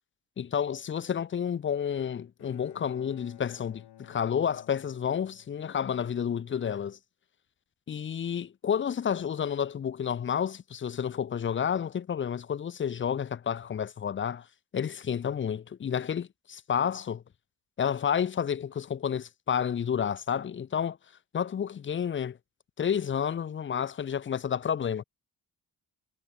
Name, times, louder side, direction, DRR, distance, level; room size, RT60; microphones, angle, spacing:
voice 1, 0.4-7.0 7.9-14.5 14.7-17.2 17.8-21.0 21.3-22.4 22.8-25.0, left 8 dB, 30° left, 0.5 m, -30 dB
Bowed string instrument, 1.9-6.2, left 13 dB, 80° left, 3.4 m, -54 dB
cardioid pair, 90°, 40 cm